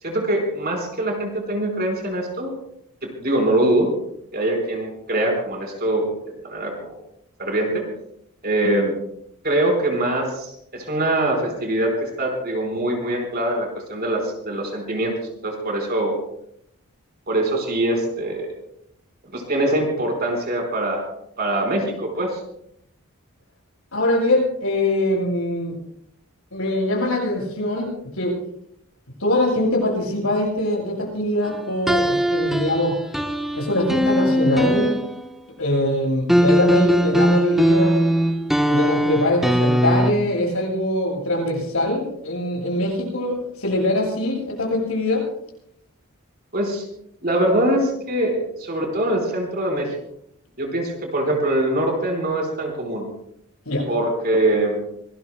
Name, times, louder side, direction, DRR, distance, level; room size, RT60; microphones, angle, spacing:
voice 1, 0.0-2.5 3.0-3.9 4.3-6.1 6.4-6.9 7.4-7.8 8.4-9.0 9.4-15.1 15.4-16.2 17.3-18.5 19.3-21.1 21.4-22.4 46.5-46.8 47.2-49.9 50.6-53.0 53.9-54.8, right 1 dB, 45° right, 2 dB, 4.6 m, -23 dB
voice 2, 23.9-25.8 26.5-28.4 29.2-33.0 33.5-35.0 35.6-38.0 38.7-45.3 53.7-53.9, left 1 dB, 70° left, -1 dB, 7.6 m, -23 dB
sound 1, 31.9-35.4 36.3-40.1, equal, ahead, 0.9 m, -20 dB
26.0 x 20.0 x 2.2 m, 0.72 s
head